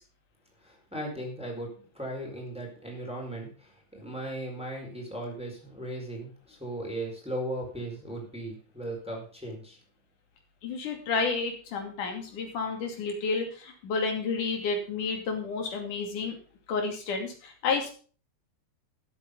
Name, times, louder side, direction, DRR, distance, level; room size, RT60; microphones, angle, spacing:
voice 1, 0.6-9.8, right 1 dB, ahead, 0 dB, 4.4 m, -37 dB
voice 2, 10.6-16.3 16.7-17.9, left 4 dB, 85° left, 3 dB, 4.1 m, -31 dB
13.5 x 8.6 x 5.3 m, 0.40 s
omnidirectional pair, 3.5 m